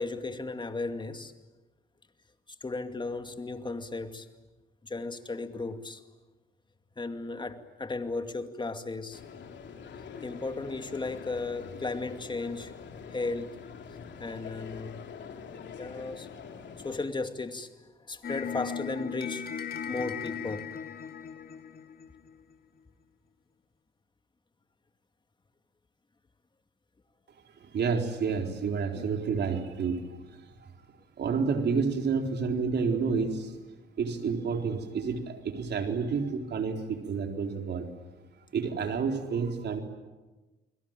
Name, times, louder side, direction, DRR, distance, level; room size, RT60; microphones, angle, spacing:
voice 1, 0.0-1.3 2.6-4.3 4.8-6.0 7.0-9.2 10.2-12.7 13.1-13.6 14.2-15.0 15.8-16.3 16.8-19.5 19.9-20.7 28.9-29.1, left 3 dB, 25° left, 2.4 m, -35 dB
sound 1, 9.1-17.1, left 6 dB, 65° left, 3.3 m, -45 dB
sound 2, 18.2-22.6, left 7 dB, 50° left, 2.7 m, -38 dB
voice 2, 27.6-30.2 30.6-30.7 31.2-33.6 34.0-37.9 38.5-39.8, right 5 dB, 60° right, 4.1 m, -29 dB
29.5 x 22.0 x 9.1 m
cardioid pair, 90°, 20 cm